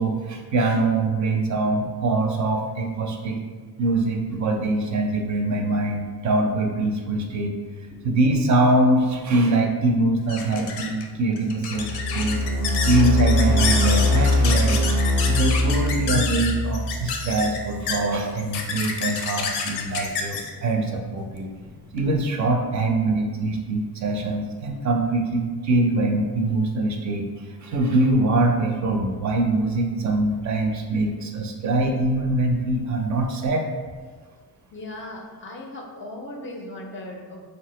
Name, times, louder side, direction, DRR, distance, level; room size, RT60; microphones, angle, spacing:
voice 1, 0.0-3.4 3.8-7.6 8.0-12.4 12.8-14.8 15.3-21.5 21.9-33.7, right 2 dB, 50° right, 2 dB, 0.4 m, -23 dB
sound 1, 9.2-22.1, left 5 dB, 85° left, 0.5 m, -30 dB
sound 2, 11.7-17.9, left 1 dB, 90° right, 0.6 m, -22 dB
voice 2, 34.7-37.4, left 1 dB, 35° left, 0 dB, 0.4 m, -37 dB
3.4 x 2.1 x 2.9 m, 1.5 s
cardioid pair, 105°, 38 cm